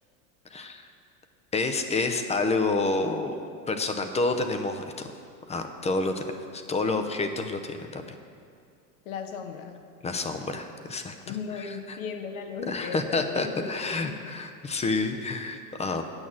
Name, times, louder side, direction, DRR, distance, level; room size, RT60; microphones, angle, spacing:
voice 1, 0.5-0.9 1.5-5.1 5.5-6.3 6.5-8.2 10.0-11.2 11.6-12.0 12.7-16.0, left 3 dB, 15° left, 7 dB, 0.6 m, -29 dB
voice 2, 9.0-9.8 11.2-14.2, left 6 dB, 75° left, 5 dB, 1.2 m, -36 dB
8.8 x 6.1 x 7.1 m, 2.4 s
supercardioid pair, 110°, 43 cm